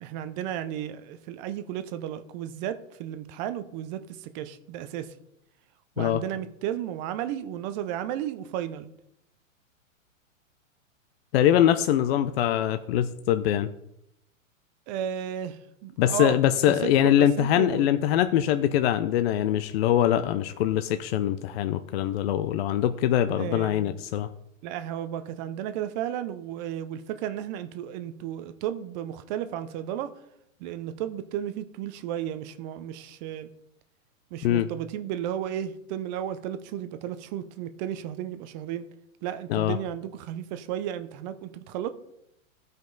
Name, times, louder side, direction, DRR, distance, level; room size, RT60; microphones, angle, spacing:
voice 1, 0.0-5.1 6.0-8.9 14.9-16.4 16.7-17.9 23.3-23.9 24.6-30.1 30.6-33.5 34.3-38.9 39.2-41.9, right 10 dB, 35° right, 10 dB, 0.6 m, -33 dB
voice 2, 11.3-13.7 16.0-24.3 34.4-34.7 39.5-39.8, left 11 dB, 50° left, 10 dB, 0.5 m, -23 dB
13.5 x 5.3 x 3.9 m, 0.81 s
hypercardioid pair, 125°, 40 cm